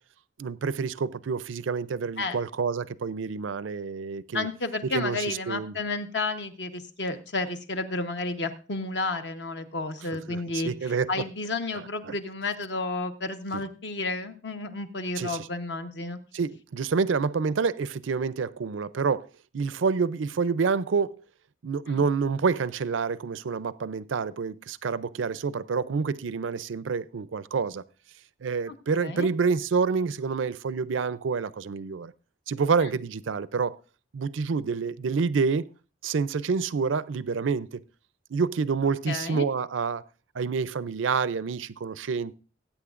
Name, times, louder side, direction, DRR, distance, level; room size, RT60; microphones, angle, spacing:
voice 1, 0.4-4.5 4.8-5.7 10.3-11.1 12.1-12.2 15.2-15.5 16.3-19.3 19.5-21.2 21.6-27.8 28.4-32.1 32.5-33.7 34.1-35.7 36.0-37.8 38.3-40.0 40.3-42.3, right 5 dB, 85° right, 0.5 m, -28 dB
voice 2, 4.3-16.2 21.9-22.0 28.7-28.8 29.0-29.3 39.1-39.5, left 3 dB, 65° left, 1.0 m, -31 dB
20.0 x 9.1 x 2.5 m
head